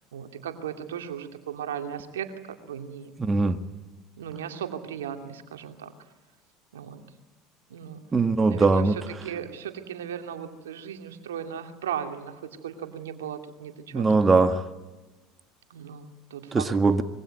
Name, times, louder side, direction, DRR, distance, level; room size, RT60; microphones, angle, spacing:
voice 1, 0.1-3.1 4.2-5.9 6.7-7.0 7.7-8.0 8.5-14.2 15.7-16.7, right 8 dB, 85° right, 6 dB, 2.4 m, -37 dB
voice 2, 3.2-3.6 8.1-9.0 13.9-14.6 16.5-17.0, right 3 dB, 25° right, 9 dB, 1.8 m, -21 dB
25.5 x 22.5 x 9.4 m, 1.2 s
hypercardioid pair, 80°, 0 cm